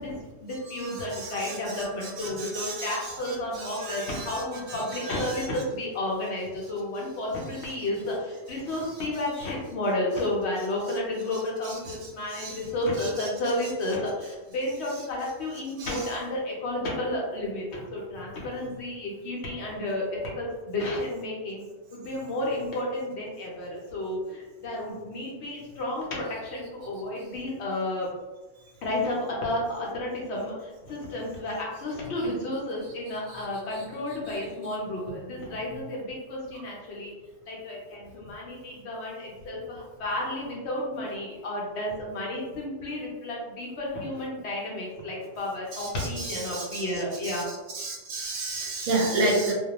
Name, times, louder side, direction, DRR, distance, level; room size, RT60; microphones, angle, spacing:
voice 1, 0.0-21.6 21.9-28.1 28.8-37.1 37.4-47.5, left 1 dB, 65° left, -3 dB, 0.8 m, -32 dB
voice 2, 2.4-3.0 3.6-4.4 5.0-5.1 12.4-12.6 15.8-15.9 45.7-45.9 46.2-46.8 47.2-47.4 47.7-49.5, right 2 dB, 70° right, -1 dB, 0.8 m, -30 dB
2.2 x 2.1 x 2.8 m, 1.2 s
omnidirectional pair, 1.4 m